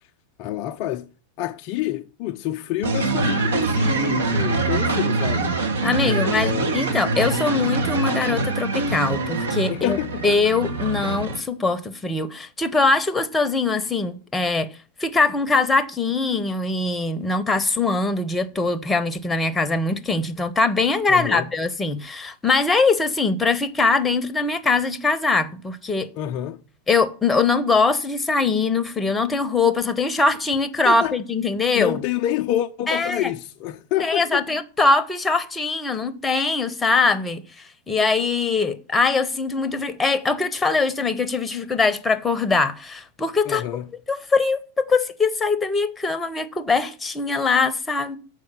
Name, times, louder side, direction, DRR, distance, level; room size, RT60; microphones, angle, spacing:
voice 1, 0.4-1.1 1.4-5.5 6.0-6.8 9.7-10.2 21.1-21.5 26.2-26.6 30.8-31.2 31.7-34.5 43.5-43.8, left 13 dB, 45° left, 0.4 m, -27 dB
sound 1, 2.8-11.4, right 3 dB, 65° right, 1.0 m, -24 dB
voice 2, 5.8-10.0 10.2-14.7 15.0-26.1 26.9-32.0 32.9-33.3 34.0-43.6 44.1-48.2, left 4 dB, 15° left, 0.7 m, -22 dB
6.5 x 4.9 x 6.9 m
figure-of-eight pair, 90°, 0 cm